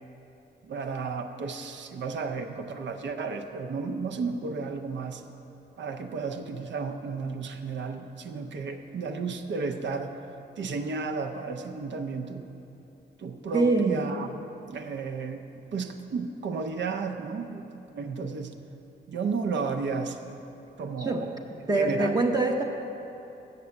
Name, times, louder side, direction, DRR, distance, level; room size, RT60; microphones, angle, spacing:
voice 1, 0.6-5.2 5.8-10.1 10.6-12.5 13.2-14.4 14.7-15.4 15.7-18.5 19.1-20.3 20.8-21.3 21.7-22.1, right 4 dB, 75° right, 6 dB, 0.7 m, -33 dB
voice 2, 13.5-14.0 21.0-21.2 21.7-22.6, right 3 dB, 20° right, 0 dB, 0.7 m, -24 dB
8.4 x 6.6 x 7.0 m, 3.0 s
cardioid pair, 80°, 19 cm